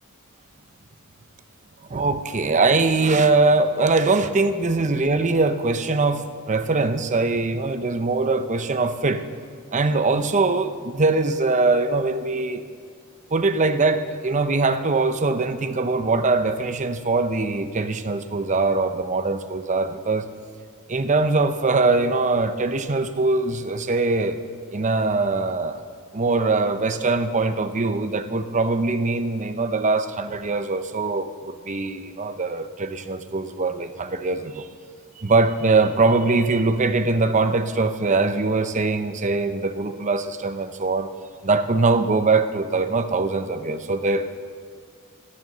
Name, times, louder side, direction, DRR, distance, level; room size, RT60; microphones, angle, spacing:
voice 1, 1.9-9.2 9.7-12.6 13.3-20.3 20.9-24.4 24.7-25.8 26.1-34.7 35.2-41.1 41.4-44.3, right 3 dB, 35° right, 9 dB, 0.7 m, -22 dB
13.5 x 13.0 x 6.8 m, 2.1 s
head